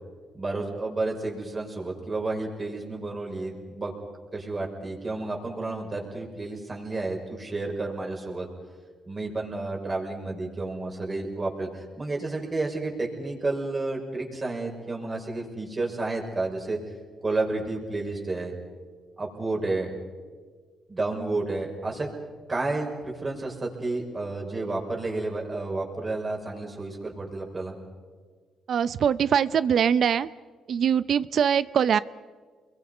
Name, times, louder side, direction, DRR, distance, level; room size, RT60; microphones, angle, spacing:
voice 1, 0.3-3.9 4.3-8.5 9.1-16.8 17.2-18.5 19.2-19.9 20.9-22.1 22.5-27.8, right 2 dB, 30° right, 0 dB, 5.8 m, -31 dB
voice 2, 28.7-30.3 30.7-32.0, right 8 dB, 60° right, 16 dB, 0.6 m, -22 dB
30.0 x 22.5 x 5.6 m, 1.5 s
cardioid pair, 90°, 0 cm